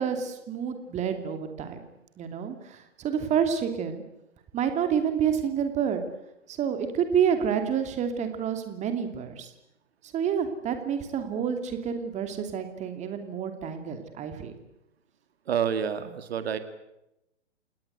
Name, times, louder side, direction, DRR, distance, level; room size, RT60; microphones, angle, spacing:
voice 1, 0.0-1.8 2.2-4.0 4.5-6.0 6.5-9.5 10.1-14.5, right 8 dB, 20° right, 7 dB, 2.8 m, -28 dB
voice 2, 15.5-16.6, right 8 dB, 55° right, 10 dB, 2.2 m, -28 dB
29.0 x 19.0 x 8.1 m, 0.88 s
figure-of-eight pair, 120°, 37 cm